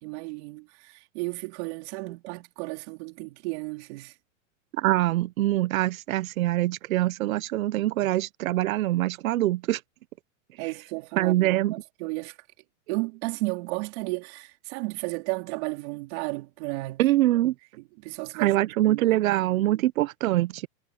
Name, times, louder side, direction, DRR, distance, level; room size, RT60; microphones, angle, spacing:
voice 1, 0.0-4.1 10.6-11.5 12.0-12.4 12.9-17.0 17.8-18.6 18.8-19.8, right 25 dB, 55° right, 3.7 m, -34 dB
voice 2, 4.7-9.8 10.6-10.7 11.2-11.7 17.0-17.5 18.3-20.7, right 15 dB, 80° right, 0.9 m, -24 dB
supercardioid pair, 140°, 41 cm